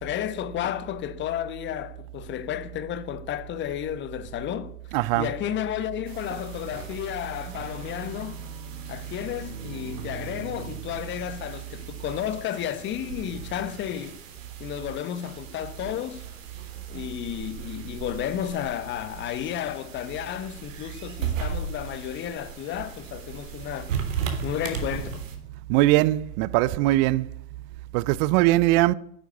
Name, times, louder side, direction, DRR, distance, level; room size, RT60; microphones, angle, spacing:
voice 1, 0.0-8.4 8.9-14.2 14.6-16.2 16.9-23.9 24.4-25.2, left 10 dB, 25° left, 1.2 m, -32 dB
voice 2, 4.9-5.3 25.7-27.3 27.9-28.9, right 17 dB, 35° right, 0.6 m, -21 dB
sound 1, 6.1-25.4, right 6 dB, 65° right, 3.5 m, -37 dB
11.5 x 10.0 x 9.4 m
figure-of-eight pair, 100°, 42 cm